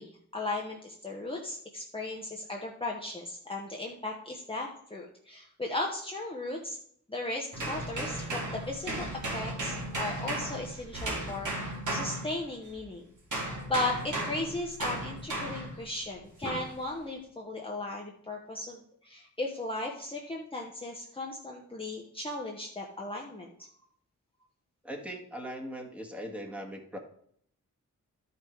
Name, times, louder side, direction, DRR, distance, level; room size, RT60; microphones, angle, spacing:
voice 1, 0.0-6.8 7.1-9.1 9.3-23.7, left 2 dB, 15° left, -2 dB, 1.1 m, -36 dB
sound 1, 7.5-12.8 13.3-15.8 16.5-16.7, right 1 dB, 70° right, 2.9 m, -35 dB
voice 2, 24.8-27.0, equal, 5° right, 0 dB, 1.8 m, -40 dB
12.0 x 5.7 x 4.6 m, 0.64 s
wide cardioid pair, 115°, 32 cm